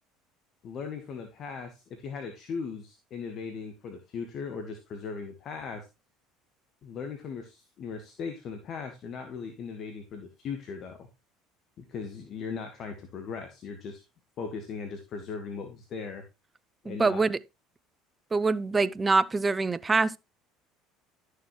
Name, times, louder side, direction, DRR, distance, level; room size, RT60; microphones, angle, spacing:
voice 1, 0.6-5.9 6.8-11.1 11.8-14.0 14.4-16.3 16.8-17.2, left 5 dB, 50° left, 1.5 m, -38 dB
voice 2, 16.9-17.4 18.3-20.2, right 3 dB, 25° right, 0.6 m, -25 dB
12.0 x 6.7 x 3.1 m
hypercardioid pair, 65°, 0 cm